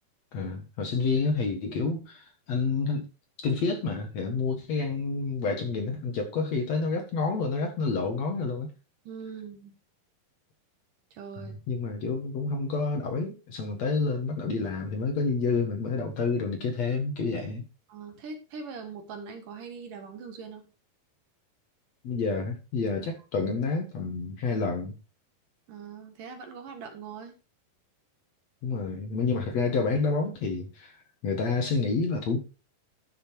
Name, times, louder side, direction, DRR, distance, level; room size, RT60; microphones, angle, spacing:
voice 1, 0.3-3.0 3.4-8.7 11.4-17.6 22.0-24.9 28.6-31.0 31.2-32.4, left 4 dB, 55° left, 2.4 m, -29 dB
voice 2, 9.1-9.7 11.1-11.6 17.9-20.7 25.7-27.4, right 5 dB, 65° right, 3.0 m, -41 dB
11.0 x 6.5 x 4.6 m
omnidirectional pair, 4.3 m